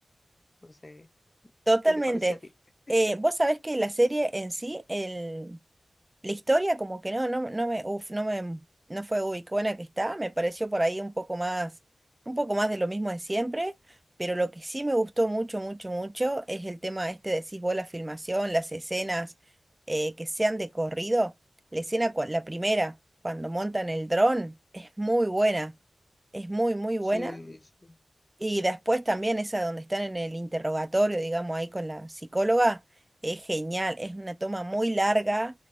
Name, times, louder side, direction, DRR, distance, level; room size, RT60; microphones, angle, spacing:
voice 1, 0.6-1.1 1.8-2.4 2.9-3.0 27.0-28.0, left 2 dB, 30° left, 0.5 m, -43 dB
voice 2, 1.7-2.3 2.9-5.6 6.2-8.6 8.9-11.7 12.3-13.7 14.2-19.3 19.9-21.3 21.7-22.9 23.2-25.7 26.3-27.4 28.4-32.8 33.2-35.5, right 1 dB, 15° right, 0.4 m, -28 dB
3.3 x 3.2 x 3.7 m
wide cardioid pair, 105°, 0 cm